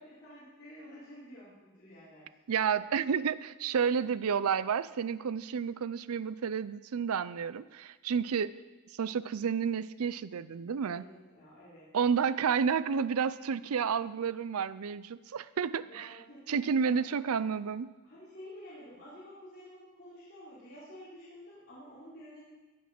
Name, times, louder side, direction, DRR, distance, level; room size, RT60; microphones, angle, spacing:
voice 1, 0.0-2.3 10.9-11.9 13.5-13.7 15.7-16.9 18.0-22.5, equal, 50° left, -12 dB, 4.5 m, -51 dB
voice 2, 2.5-8.5 8.9-11.0 11.9-16.1 16.5-17.9, right 6 dB, 85° right, 16 dB, 0.5 m, -30 dB
16.5 x 6.1 x 6.0 m, 1.3 s
head